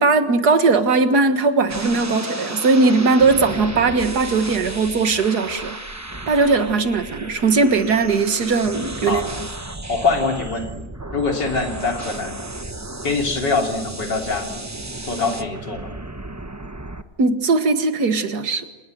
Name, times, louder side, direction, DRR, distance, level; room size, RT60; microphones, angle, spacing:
voice 1, 0.0-5.8 6.3-9.2 17.2-18.6, right 3 dB, 65° right, 8 dB, 2.2 m, -19 dB
sound 1, 1.7-17.0, right 2 dB, 15° right, 0.8 m, -33 dB
voice 2, 9.9-10.7 11.1-12.3 13.0-14.5 15.0-15.9, left 4 dB, 80° left, 2 dB, 3.8 m, -23 dB
28.0 x 20.5 x 7.8 m, 1.2 s
omnidirectional pair, 1.9 m